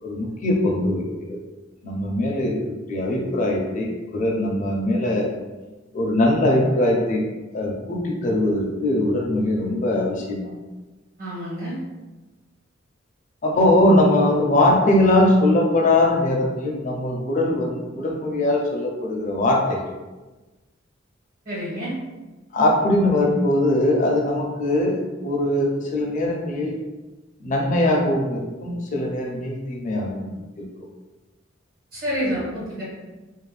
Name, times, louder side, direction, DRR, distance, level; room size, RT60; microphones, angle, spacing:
voice 1, 0.0-1.4 1.8-5.3 5.9-7.2 7.5-10.5 13.4-19.8 22.5-26.8 27.4-30.3 30.6-30.7, left 1 dB, 40° left, -1 dB, 0.5 m, -21 dB
voice 2, 11.2-11.8 21.4-21.9 31.9-32.8, equal, 50° right, -7 dB, 1.3 m, -28 dB
2.5 x 2.1 x 3.2 m, 1.2 s
head